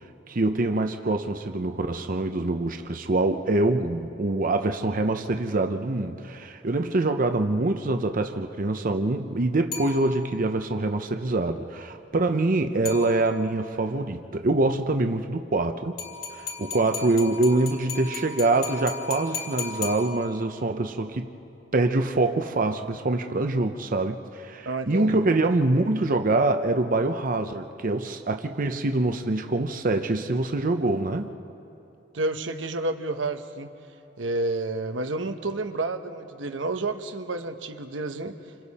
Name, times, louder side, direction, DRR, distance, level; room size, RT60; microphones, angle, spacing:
voice 1, 0.3-15.9 16.3-21.3 21.7-31.3, right 2 dB, 45° right, 6 dB, 0.7 m, -25 dB
sound 1, 9.7-10.5 12.9-13.6 16.0-20.6, left 5 dB, 55° left, 4.3 m, -36 dB
voice 2, 24.6-25.2 32.1-33.7 34.2-38.4, right 2 dB, 85° right, 7 dB, 1.1 m, -30 dB
28.0 x 26.5 x 4.2 m, 2.7 s
head